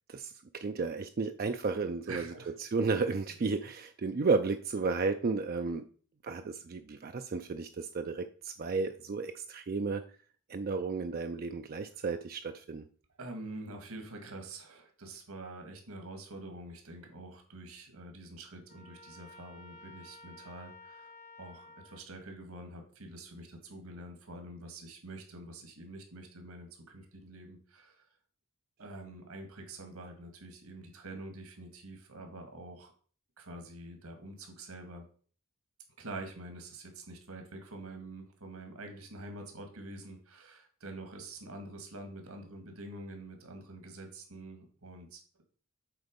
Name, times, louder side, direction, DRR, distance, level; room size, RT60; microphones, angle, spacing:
voice 1, 0.6-2.3 2.6-5.8 6.2-10.0 10.5-12.8, right 4 dB, 40° right, 7 dB, 0.4 m, -33 dB
voice 2, 2.1-2.5 3.3-3.4 11.9-12.0 13.2-28.1 28.8-32.9 33.4-35.1 36.0-45.4, right 2 dB, 80° right, 4 dB, 1.8 m, -46 dB
Trumpet, 18.7-22.1, left 2 dB, 35° left, 0.7 m, -53 dB
8.0 x 4.0 x 5.2 m, 0.43 s
head